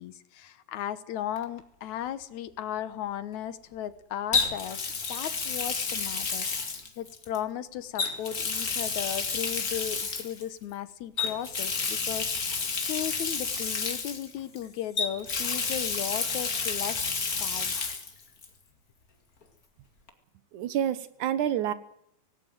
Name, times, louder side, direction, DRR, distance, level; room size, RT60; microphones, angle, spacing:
voice 1, 0.0-4.8 5.1-17.8, left 10 dB, 75° left, 14 dB, 2.4 m, -36 dB
Water tap faucet, 1.4-1.6 4.3-7.4 7.9-10.4 11.2-14.6 15.0-18.1 18.4-18.5 20.1-20.2, left 5 dB, 30° left, 2.2 m, -30 dB
voice 2, 20.5-21.7, right 10 dB, 85° right, 14 dB, 2.7 m, -28 dB
18.5 x 17.0 x 9.2 m, 0.72 s
omnidirectional pair, 3.4 m